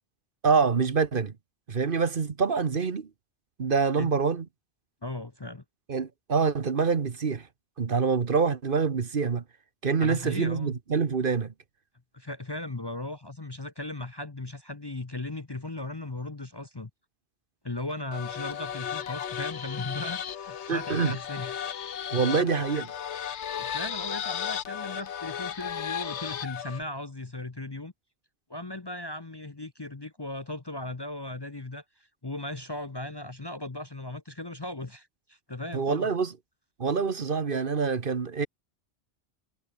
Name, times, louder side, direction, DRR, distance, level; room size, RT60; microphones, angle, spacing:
voice 1, 0.4-1.3 1.7-3.1 3.6-4.4 5.9-7.5 7.8-9.4 9.8-11.5 20.7-21.2 22.1-22.8 35.7-36.3 36.8-38.5, right 5 dB, 50° right, 1.3 m, -26 dB
voice 2, 5.0-5.6 10.0-10.7 12.1-16.9 17.6-21.5 22.2-22.8 23.6-27.9 28.5-36.1, left 2 dB, 25° left, 0.9 m, -37 dB
sound 1, 18.1-26.8, left 9 dB, 80° left, 1.2 m, -35 dB
omnidirectional pair, 1.2 m